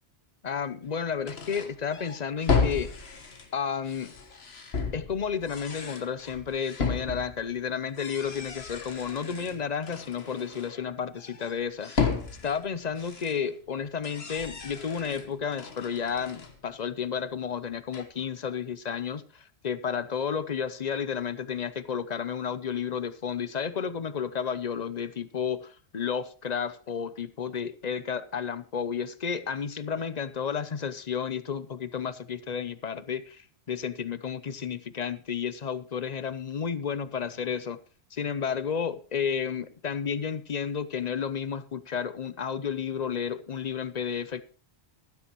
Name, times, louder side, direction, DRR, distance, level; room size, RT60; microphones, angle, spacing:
voice 1, 0.4-3.1 3.5-4.1 4.9-12.1 12.4-37.8 38.1-44.4, left 7 dB, 45° left, 0.7 m, -32 dB
sound 1, 0.8-0.9 1.2-7.6 7.9-10.9 11.1-13.6 13.9-16.7 17.0-17.1 17.7-18.0, left 5 dB, 70° left, 1.6 m, -34 dB
15.5 x 12.0 x 3.0 m
omnidirectional pair, 1.1 m